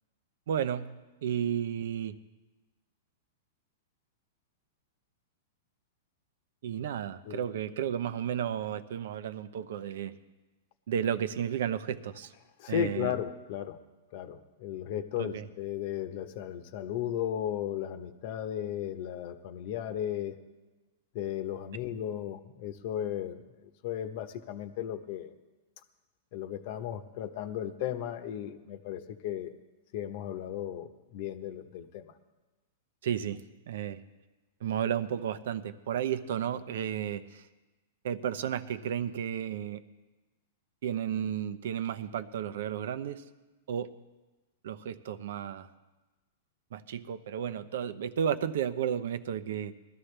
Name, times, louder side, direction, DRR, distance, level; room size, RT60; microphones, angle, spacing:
voice 1, 0.5-0.9 1.2-2.2 6.6-10.2 10.9-12.3 12.7-13.1 15.2-15.5 33.0-33.4 33.7-34.0 34.6-37.5 38.0-39.8 40.8-43.2 43.7-43.9 44.6-45.7 46.7-49.7, right 9 dB, 70° right, 13 dB, 0.8 m, -33 dB
voice 2, 12.6-13.8 14.1-20.4 21.1-25.3 26.3-29.5 29.9-32.1, left 10 dB, 50° left, 10 dB, 1.0 m, -35 dB
20.5 x 13.0 x 3.4 m, 1.2 s
hypercardioid pair, 140°, 0 cm